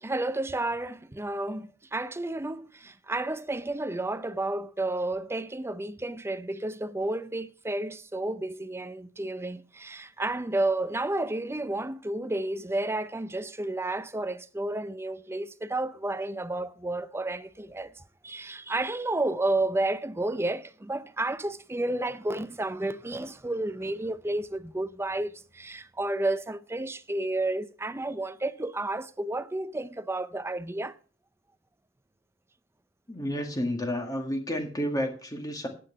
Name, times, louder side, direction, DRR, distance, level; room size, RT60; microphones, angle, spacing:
voice 1, 0.0-17.9 18.2-30.9, right 2 dB, 15° right, 0.5 m, -31 dB
voice 2, 33.1-35.7, equal, 20° left, 1.8 m, -31 dB
10.0 x 8.6 x 5.6 m
head